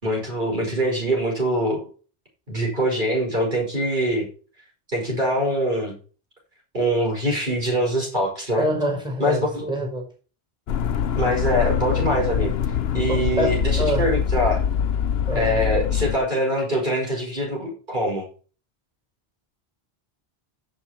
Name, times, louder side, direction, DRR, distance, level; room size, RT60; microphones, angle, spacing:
voice 1, 0.0-1.8 2.5-4.3 4.9-6.0 6.7-8.7 9.2-9.7 11.2-12.6 12.9-14.6 15.3-18.3, equal, 50° right, -1 dB, 5.7 m, -23 dB
voice 2, 8.6-10.1 13.1-13.5 13.8-14.0 15.3-15.6, equal, 5° right, 0 dB, 4.6 m, -25 dB
sound 1, 10.7-16.2, left 8 dB, 70° left, 1.0 m, -24 dB
15.5 x 6.1 x 4.4 m, 0.37 s
omnidirectional pair, 1.1 m